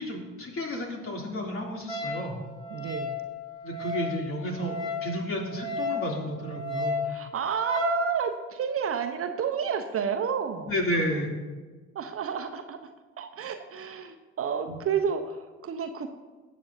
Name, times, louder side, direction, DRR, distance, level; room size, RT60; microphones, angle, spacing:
voice 1, 0.0-2.4 3.6-7.0 10.6-11.3 14.7-14.8, equal, 40° left, 0 dB, 3.0 m, -32 dB
Wind instrument woodwind instrument, 1.9-8.0, left 3 dB, 15° left, 4.0 m, -34 dB
voice 2, 2.7-3.2 7.0-10.7 11.9-16.1, right 7 dB, 40° right, 7 dB, 0.9 m, -30 dB
20.0 x 8.5 x 2.8 m, 1.3 s
hypercardioid pair, 55°, 33 cm